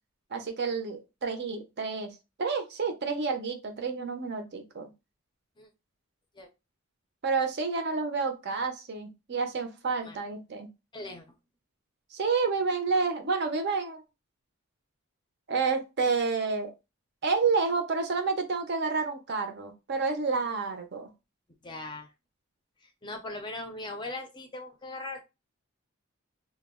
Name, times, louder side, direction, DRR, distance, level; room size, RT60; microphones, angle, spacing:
voice 1, 0.3-4.9 7.2-10.7 12.1-14.0 15.5-16.7 17.2-21.1, right 4 dB, 55° right, 6 dB, 0.5 m, -29 dB
voice 2, 10.9-11.3 21.6-22.1 22.8-25.2, left 2 dB, 20° left, 5 dB, 0.5 m, -39 dB
2.2 x 2.0 x 3.5 m, 0.25 s
head